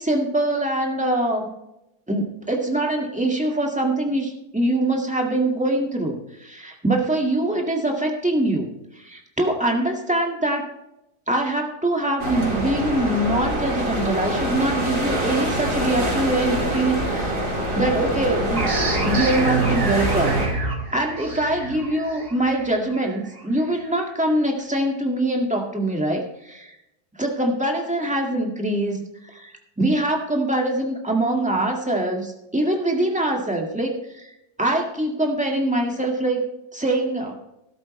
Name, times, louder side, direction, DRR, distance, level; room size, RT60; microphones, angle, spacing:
voice 1, 0.0-1.5 2.1-8.7 8.9-10.7 11.3-17.5 17.8-18.7 19.0-20.4 20.9-26.7 27.2-34.3 34.6-36.4 36.7-37.4, right 1 dB, 5° right, 0 dB, 1.8 m, -23 dB
sound 1, 12.2-20.5, right 1 dB, 55° right, 3.8 m, -25 dB
sound 2, 18.6-23.9, right 3 dB, 35° right, 2.0 m, -28 dB
13.0 x 12.5 x 3.2 m, 0.88 s
omnidirectional pair, 1.7 m